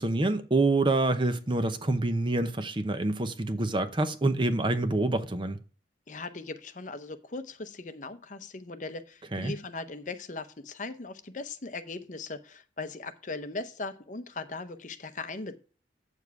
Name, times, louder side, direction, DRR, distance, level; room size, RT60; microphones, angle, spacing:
voice 1, 0.0-5.6 9.3-9.5, right 2 dB, 25° right, 0.8 m, -27 dB
voice 2, 6.1-15.6, left 3 dB, 45° left, 0.8 m, -39 dB
8.3 x 7.2 x 4.7 m
head